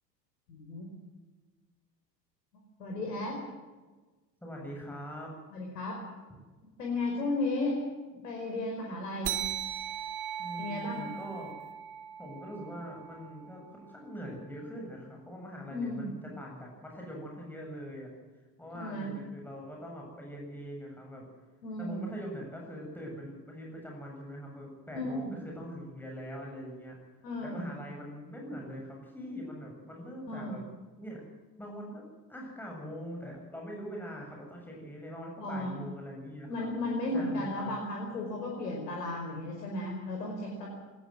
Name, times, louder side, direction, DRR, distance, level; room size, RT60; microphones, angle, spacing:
voice 1, 0.5-0.9 2.8-3.4 5.5-6.0 6.8-7.8 8.1-9.5 10.6-11.2 15.7-16.1 18.8-19.1 21.6-22.0 24.9-25.3 27.2-27.7 30.3-30.6 35.4-35.8 36.5-40.7, left 2 dB, 65° left, 0 dB, 5.3 m, -34 dB
voice 2, 4.4-5.3 10.4-11.5 12.2-18.1 18.6-21.2 21.8-27.0 27.4-30.6 31.0-31.2 31.6-36.7 37.1-37.7, equal, 5° left, -1 dB, 7.8 m, -43 dB
sound 1, 9.2-14.2, right 10 dB, 40° right, 2.6 m, -39 dB
20.0 x 19.5 x 7.7 m, 1.3 s
figure-of-eight pair, 75°, 50 cm